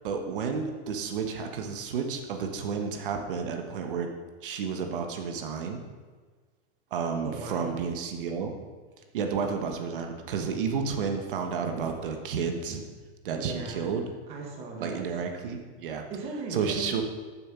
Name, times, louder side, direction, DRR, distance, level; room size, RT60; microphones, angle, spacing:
voice 1, 0.0-4.1 4.4-5.8 6.9-8.5 9.1-12.8 13.2-14.0 14.8-16.0 16.5-17.0, right 6 dB, 55° right, 4 dB, 1.4 m, -31 dB
voice 2, 7.2-7.7 13.3-13.9 14.3-15.0 16.1-17.0, right 4 dB, 20° right, 0 dB, 1.2 m, -37 dB
10.5 x 7.2 x 6.1 m, 1.4 s
supercardioid pair, 170°, 32 cm